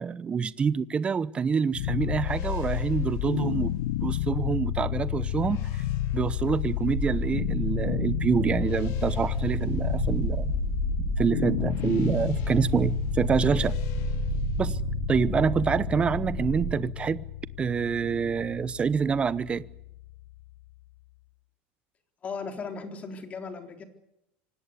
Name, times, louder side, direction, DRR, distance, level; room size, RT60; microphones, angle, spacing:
voice 1, 0.0-5.7 6.1-10.5 11.0-13.8 14.6-14.8 15.1-17.2 17.6-19.6, right 6 dB, 20° right, 0.8 m, -27 dB
sound 1, 1.7-20.8, left 13 dB, 90° left, 0.8 m, -31 dB
sound 2, 1.8-14.6, left 8 dB, 55° left, 3.0 m, -40 dB
sound 3, 6.9-16.7, right 7 dB, 35° right, 4.4 m, -33 dB
voice 2, 22.2-23.8, left 4 dB, 25° left, 3.8 m, -37 dB
25.5 x 18.5 x 8.3 m
supercardioid pair, 150°, 6 cm